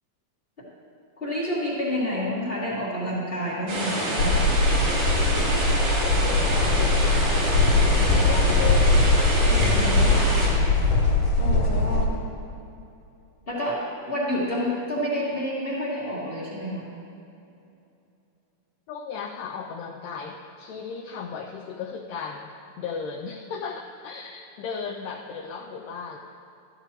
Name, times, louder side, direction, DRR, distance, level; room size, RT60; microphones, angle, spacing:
voice 1, 1.2-4.4 9.4-10.1 11.4-12.2 13.5-16.9, equal, 35° left, -7 dB, 0.9 m, -29 dB
sound 1, 3.7-10.5, right 1 dB, 80° right, 4.9 m, -27 dB
sound 2, 4.2-12.1, left 2 dB, 65° left, 3.0 m, -21 dB
voice 2, 6.0-9.1 9.6-10.5 18.9-26.2, left 6 dB, 80° left, 0 dB, 2.0 m, -36 dB
14.0 x 12.0 x 3.0 m, 2.7 s
omnidirectional pair, 4.1 m